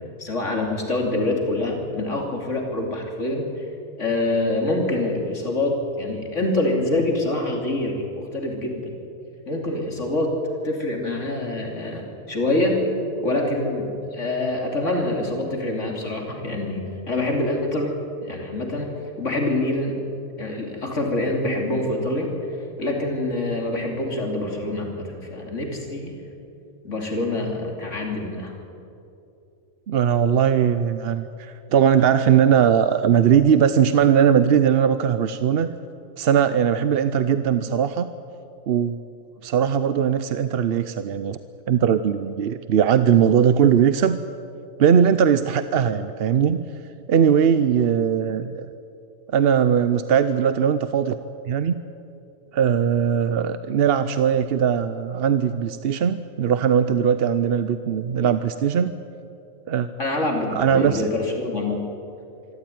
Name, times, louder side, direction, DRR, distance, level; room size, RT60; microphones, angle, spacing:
voice 1, 0.2-3.7 4.0-9.0 9.5-10.3 10.6-12.8 13.2-17.9 18.2-18.9 19.2-19.9 20.4-22.3 22.8-26.2 26.8-28.5 60.0-61.8, left 2 dB, 60° left, 1 dB, 3.3 m, -25 dB
voice 2, 29.9-35.7 36.2-38.1 38.7-39.0 39.4-41.4 41.7-44.2 44.8-46.7 47.1-48.7 49.3-51.1 51.5-51.7 52.5-59.0 59.7-59.9 60.5-61.1, right 8 dB, 55° right, 12 dB, 0.8 m, -19 dB
25.0 x 14.0 x 9.3 m, 2.7 s
omnidirectional pair, 1.4 m